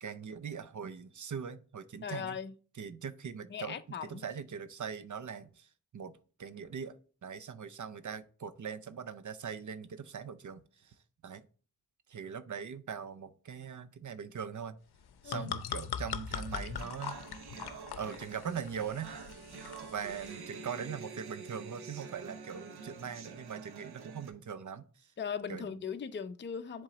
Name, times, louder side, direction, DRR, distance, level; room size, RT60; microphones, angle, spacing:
voice 1, 0.0-2.4 2.8-5.7 5.9-7.0 7.2-10.9 11.2-11.4 12.1-14.8 15.2-17.2 18.0-19.2 19.8-25.1 25.5-25.7, right 7 dB, 50° right, 0.6 m, -41 dB
voice 2, 2.0-2.5 3.5-4.2 15.2-15.5 25.2-26.8, left 7 dB, 30° left, 0.5 m, -39 dB
sound 1, 14.9-20.4, left 8 dB, 85° left, 0.6 m, -41 dB
sound 2, 16.3-24.3, right 5 dB, 85° right, 0.8 m, -48 dB
7.3 x 3.7 x 3.9 m
cardioid pair, 55°, 38 cm